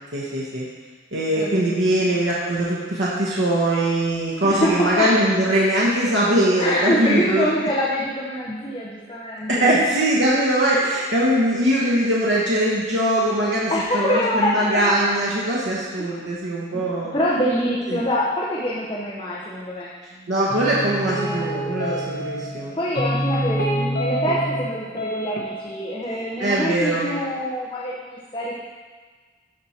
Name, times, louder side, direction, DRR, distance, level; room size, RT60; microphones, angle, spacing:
voice 1, 0.1-0.6 1.1-7.5 9.5-17.1 17.9-18.0 20.3-22.8 26.4-27.1, right 1 dB, 90° right, -6 dB, 1.3 m, -21 dB
voice 2, 1.4-2.3 4.4-5.1 6.6-9.7 13.7-14.9 16.0-16.3 16.7-19.9 21.2-21.5 22.7-28.6, equal, 30° left, -6 dB, 0.9 m, -25 dB
sound 1, 20.5-22.6 23.0-24.7 25.0-25.6, equal, 55° left, 1.3 m, -26 dB
13.0 x 4.7 x 4.4 m, 1.4 s
head